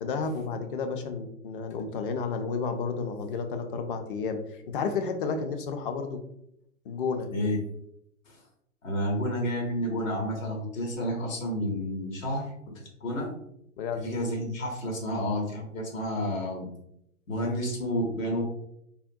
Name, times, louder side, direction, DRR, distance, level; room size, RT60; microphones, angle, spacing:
voice 1, 0.0-6.2 6.9-7.3 13.8-14.1, left 5 dB, 45° left, 7 dB, 0.5 m, -31 dB
voice 2, 8.8-12.5 13.0-13.3 14.0-16.7 17.3-18.4, equal, 75° left, -1 dB, 1.2 m, -30 dB
3.5 x 2.2 x 2.6 m, 0.77 s
hypercardioid pair, 120°, 40 cm